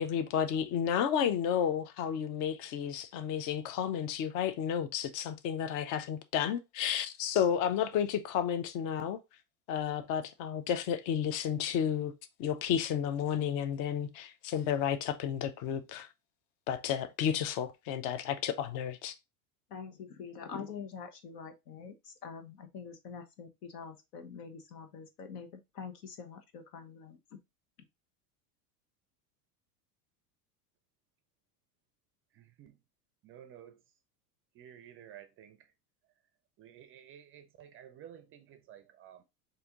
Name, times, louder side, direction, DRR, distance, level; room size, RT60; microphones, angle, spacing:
voice 1, 0.0-9.2 9.7-12.1 12.4-16.1 16.7-19.1, left 9 dB, 40° left, 0.6 m, -32 dB
voice 2, 19.7-27.2, left 6 dB, 80° left, 1.2 m, -45 dB
voice 3, 32.3-32.7 33.2-33.8 34.6-35.6 36.6-39.2, right 10 dB, 30° right, 0.4 m, -53 dB
4.2 x 2.7 x 3.6 m
supercardioid pair, 120°, 47 cm